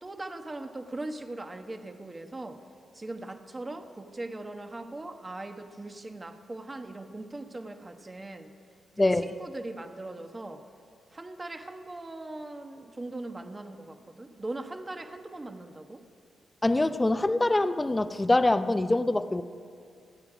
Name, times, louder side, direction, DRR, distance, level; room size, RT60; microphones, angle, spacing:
voice 1, 0.0-2.6 2.9-8.5 9.0-10.6 11.1-16.0, right 2 dB, 25° right, 6 dB, 1.3 m, -40 dB
voice 2, 16.6-19.4, left 2 dB, 20° left, 11 dB, 0.7 m, -24 dB
28.0 x 9.6 x 5.0 m, 2.4 s
cardioid pair, 60°, 0 cm